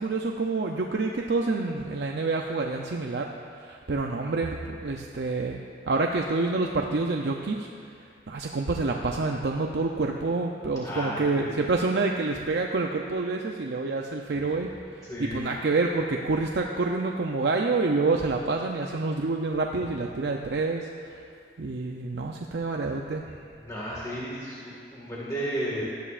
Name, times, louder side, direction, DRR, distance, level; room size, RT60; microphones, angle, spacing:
voice 1, 0.0-3.3 3.6-5.6 5.9-7.7 8.0-21.2 21.6-23.2, right 3 dB, 70° right, 1 dB, 0.6 m, -28 dB
voice 2, 10.8-11.5 15.0-15.4 23.2-23.3 23.6-25.8, equal, 20° left, -7 dB, 1.9 m, -33 dB
18.0 x 12.0 x 2.5 m, 2.3 s
head